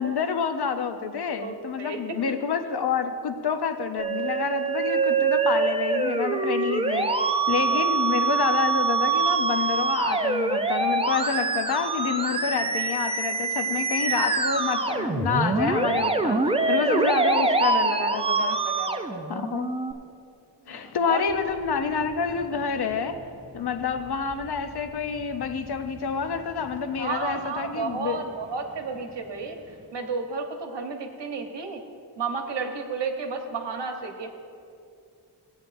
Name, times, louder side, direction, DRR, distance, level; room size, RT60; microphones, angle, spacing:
voice 1, 0.0-18.6 19.3-19.7 20.7-23.3 23.5-28.2, left 6 dB, 65° left, 8 dB, 0.7 m, -28 dB
voice 2, 1.4-2.3 7.7-8.1 16.2-17.0 17.3-17.4 18.4-19.5 20.6-21.2 27.0-29.6 29.9-31.9 32.2-34.3, right 4 dB, 80° right, 4 dB, 1.1 m, -33 dB
Musical instrument, 4.0-19.9, right 4 dB, 15° right, 0.4 m, -25 dB
sound 1, 21.2-29.9, right 1 dB, 45° right, 2.2 m, -49 dB
17.0 x 8.9 x 2.6 m, 2.4 s
wide cardioid pair, 130°, 42 cm